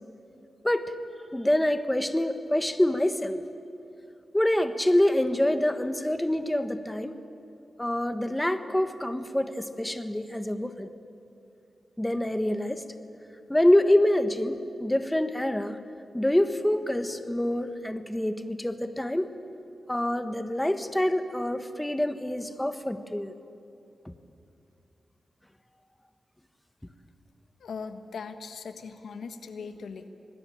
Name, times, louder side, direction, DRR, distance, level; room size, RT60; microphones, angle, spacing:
voice 1, 1.3-3.4 4.3-7.1 7.8-10.9 12.0-12.8 13.5-15.8 16.1-19.3 19.9-23.3 24.0-24.1, left 1 dB, 10° left, 9 dB, 1.3 m, -26 dB
voice 2, 27.6-30.1, left 5 dB, 85° left, 8 dB, 1.5 m, -39 dB
25.5 x 20.0 x 8.9 m, 2.6 s
wide cardioid pair, 90°, 0 cm